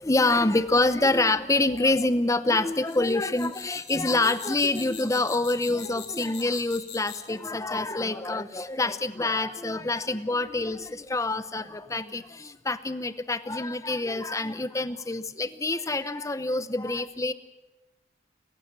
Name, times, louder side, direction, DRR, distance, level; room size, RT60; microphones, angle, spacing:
voice 1, 0.0-17.3, left 2 dB, 15° left, 13 dB, 0.8 m, -26 dB
Grasshopper Singing, 2.7-7.4, left 8 dB, 75° left, 4.2 m, -42 dB
29.5 x 15.0 x 7.4 m, 1.1 s
head